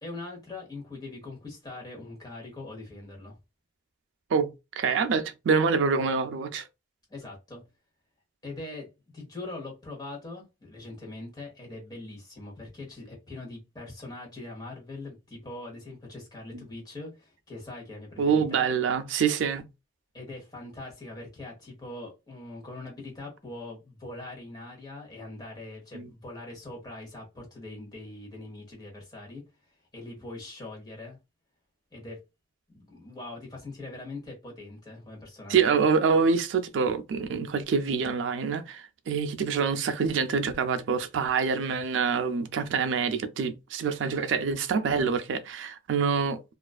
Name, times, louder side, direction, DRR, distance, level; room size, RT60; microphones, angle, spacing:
voice 1, 0.0-3.4 7.1-7.6 8.4-8.9 9.1-18.7 20.1-31.2 31.9-32.2 32.7-35.8, left 2 dB, 20° left, 0.9 m, -42 dB
voice 2, 4.3-6.7 16.5-16.6 18.2-19.7 25.9-26.1 35.5-46.4, right 5 dB, 70° right, 0.3 m, -26 dB
2.4 x 2.3 x 2.3 m
head